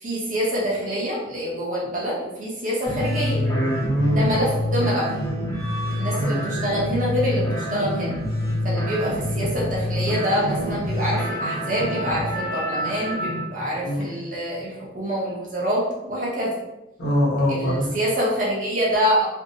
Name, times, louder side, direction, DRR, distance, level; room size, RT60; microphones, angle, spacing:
voice 1, 0.0-3.4 4.1-5.1 5.9-8.1 8.6-16.5 17.5-19.2, equal, 45° right, -5 dB, 0.7 m, -26 dB
sound 1, 2.9-13.4, equal, 20° left, 0.7 m, -27 dB
voice 2, 3.3-4.2 6.2-6.4 13.8-14.1 17.0-17.9, equal, 70° left, -7 dB, 1.0 m, -23 dB
2.6 x 2.0 x 2.6 m, 0.95 s
head